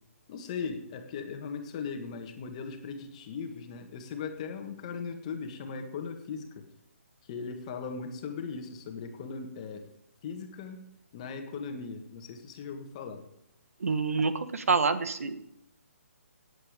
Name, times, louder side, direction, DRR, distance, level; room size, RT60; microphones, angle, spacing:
voice 1, 0.3-6.7 7.2-9.9 10.2-10.9 11.1-13.2, left 5 dB, 25° left, 5 dB, 1.7 m, -38 dB
voice 2, 13.8-15.4, right 4 dB, 75° right, 11 dB, 1.5 m, -27 dB
18.0 x 8.3 x 5.2 m, 0.78 s
hypercardioid pair, 165°, 8 cm